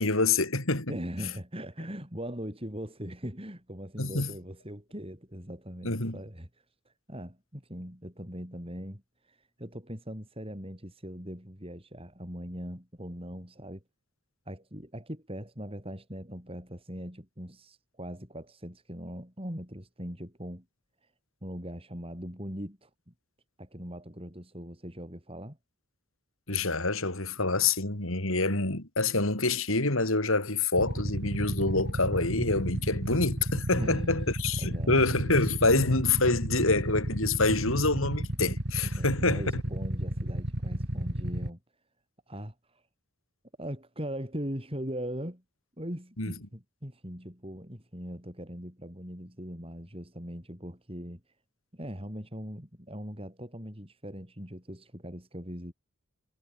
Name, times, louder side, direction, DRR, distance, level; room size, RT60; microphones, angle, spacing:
voice 1, 0.0-0.9 4.0-4.3 5.8-6.2 26.5-39.6 46.2-46.3, left 3 dB, 70° left, 4.3 m, -27 dB
voice 2, 0.9-6.5 6.8-13.8 14.5-20.6 21.4-23.1 23.6-25.6 33.7-34.3 34.6-35.0 39.0-41.6 42.3-42.8 43.6-45.4 45.8-51.2 51.7-55.7, equal, 25° right, 6.6 m, -40 dB
Motorcycle / Idling, 30.8-41.5, right 1 dB, 50° right, 3.0 m, -32 dB
head